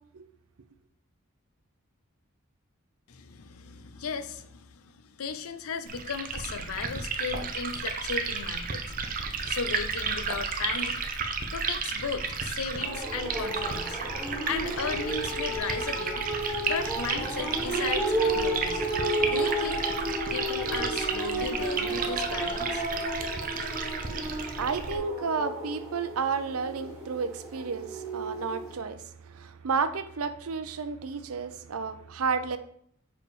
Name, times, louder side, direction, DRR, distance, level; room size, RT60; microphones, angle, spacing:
voice 1, 3.1-8.8 9.5-11.0 11.5-18.8 19.3-19.8 20.3-22.9, left 5 dB, 90° left, 11 dB, 0.6 m, -36 dB
Liquid, 5.9-25.0, right 5 dB, 40° right, 0.6 m, -33 dB
sound 1, 12.8-28.7, right 1 dB, ahead, 2.0 m, -32 dB
voice 2, 23.8-32.6, right 5 dB, 90° right, 12 dB, 0.6 m, -32 dB
5.1 x 4.6 x 5.0 m, 0.65 s
head